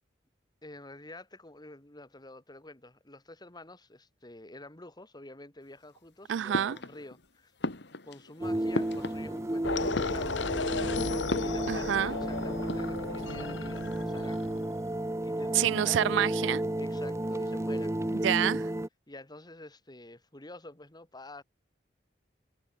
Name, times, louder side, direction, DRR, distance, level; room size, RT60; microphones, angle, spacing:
voice 1, 0.6-7.5 8.1-10.4 11.1-14.7 15.2-16.0 16.8-18.3 19.1-21.4, left 2 dB, 25° left, 2.5 m, -49 dB
voice 2, 6.3-6.8 11.7-12.2 15.5-16.6 18.1-18.7, right 10 dB, 80° right, 0.3 m, -28 dB
sound 1, 6.5-7.2 7.6-9.6 9.8-10.7 11.3-12.3 12.5-13.1, left 2 dB, 65° left, 2.3 m, -37 dB
sound 2, 8.4-18.9, right 1 dB, 15° right, 0.8 m, -33 dB
sound 3, 9.6-14.8, left 3 dB, 90° left, 1.3 m, -34 dB
head